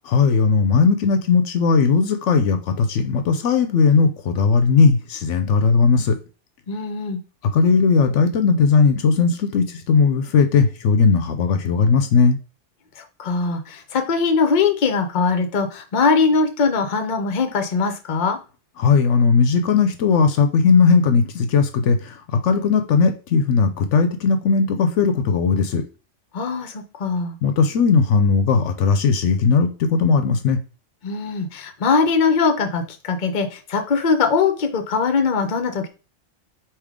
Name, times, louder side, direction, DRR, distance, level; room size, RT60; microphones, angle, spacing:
voice 1, 0.1-6.2 7.5-12.4 18.8-25.8 27.4-30.6, left 5 dB, 70° left, 7 dB, 0.9 m, -17 dB
voice 2, 6.7-7.2 13.0-18.4 26.3-27.4 31.0-35.9, left 5 dB, 45° left, 6 dB, 0.7 m, -21 dB
3.6 x 3.0 x 4.8 m, 0.34 s
omnidirectional pair, 1.3 m